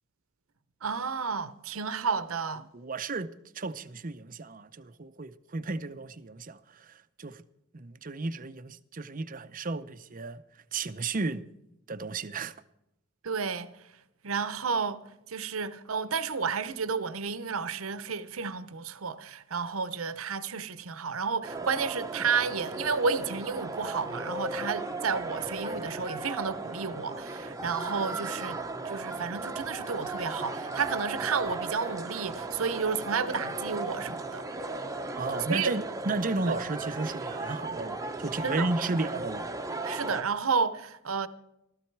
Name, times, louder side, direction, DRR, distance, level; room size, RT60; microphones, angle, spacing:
voice 1, 0.8-2.7 13.2-13.7 14.2-15.0 15.3-34.4 35.5-35.7 36.5-36.6 38.4-38.7 39.8-41.3, right 5 dB, 80° right, 0.9 m, -31 dB
voice 2, 2.7-7.4 7.7-10.4 10.7-11.4 11.9-12.5 35.2-39.5, right 3 dB, 40° right, 0.6 m, -34 dB
sound 1, 21.4-40.2, right 2 dB, 15° right, 0.9 m, -36 dB
16.0 x 14.0 x 4.7 m
head